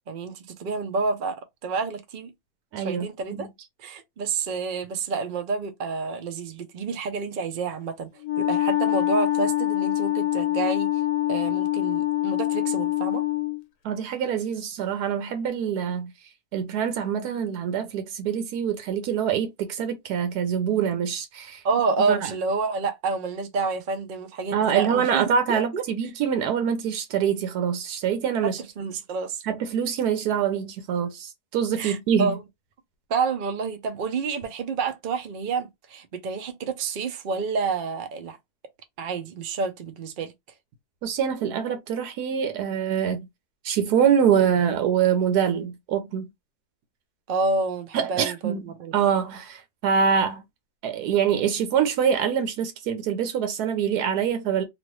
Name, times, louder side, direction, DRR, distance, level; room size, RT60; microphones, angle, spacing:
voice 1, 0.1-2.3 2.8-3.5 3.8-8.1 8.4-10.9 11.3-13.2 21.6-25.8 28.4-29.4 31.8-32.4 33.1-38.4 39.0-40.3 47.3-48.9, right 4 dB, 70° right, 0.4 m, -29 dB
voice 2, 2.7-3.1 3.3-3.5 13.8-16.1 16.5-21.6 22.1-22.3 24.5-28.6 29.4-32.4 41.0-43.3 43.6-46.3 47.9-48.6 48.9-50.4 50.8-54.6, right 8 dB, 90° right, 1.2 m, -25 dB
Wind instrument woodwind instrument, 8.2-13.6, left 15 dB, 90° left, 1.2 m, -25 dB
2.9 x 2.5 x 3.1 m
omnidirectional pair, 1.6 m